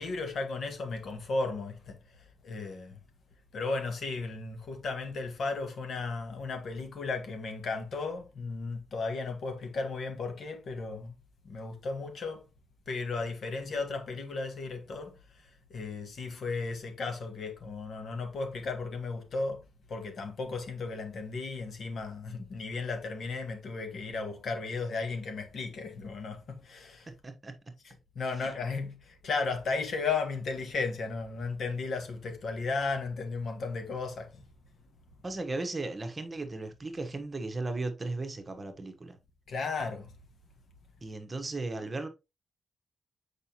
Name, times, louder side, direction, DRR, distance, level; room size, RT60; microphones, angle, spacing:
voice 1, 0.0-3.0 3.5-11.1 11.4-12.4 12.9-19.6 19.9-27.1 27.8-34.4 39.5-40.1, left 4 dB, 65° left, 1.6 m, -35 dB
voice 2, 27.1-27.6 28.4-28.5 35.2-39.2 41.0-42.1, right 2 dB, 25° right, 1.1 m, -36 dB
6.7 x 5.0 x 2.9 m
cardioid pair, 110°, 0 cm